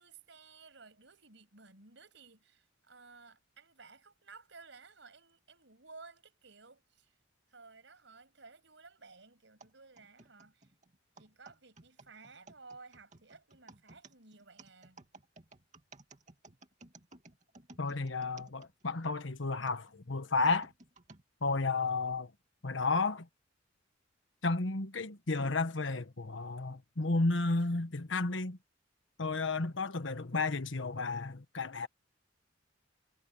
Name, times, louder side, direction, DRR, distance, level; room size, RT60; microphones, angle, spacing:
voice 1, 0.0-7.1 7.5-10.7 11.2-15.0 17.9-18.0, right 4 dB, 70° right, 6.7 m, -56 dB
sound 1, 9.6-19.1 19.7-21.2 21.9-22.0 22.8-23.1, right 3 dB, 40° right, 2.3 m, -57 dB
voice 2, 17.8-20.7 21.4-22.3 22.6-23.3 24.4-28.6 29.2-31.9, left 3 dB, 75° left, 1.3 m, -32 dB
head